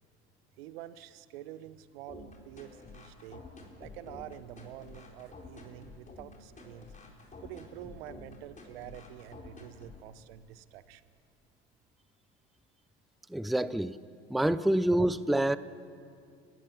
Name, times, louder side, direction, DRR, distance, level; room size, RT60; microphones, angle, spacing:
voice 1, 0.6-3.4 3.8-6.9 7.4-11.0, right 13 dB, 75° right, 15 dB, 0.9 m, -47 dB
sound 1, 2.1-10.1, left 3 dB, 25° left, 4.4 m, -49 dB
voice 2, 13.3-14.0 14.3-15.6, right 1 dB, ahead, 16 dB, 0.5 m, -27 dB
29.5 x 15.5 x 5.9 m, 2.3 s
hypercardioid pair, 70°, 30 cm